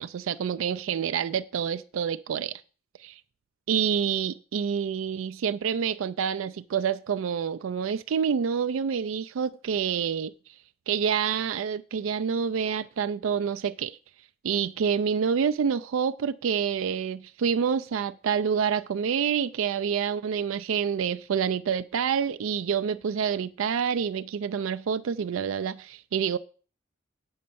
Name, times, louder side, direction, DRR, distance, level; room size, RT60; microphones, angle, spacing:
voice 1, 0.0-2.6 3.0-3.2 3.7-10.3 10.9-14.0 14.4-26.4, right 7 dB, 85° right, 0.4 m, -27 dB
8.7 x 5.3 x 6.9 m
head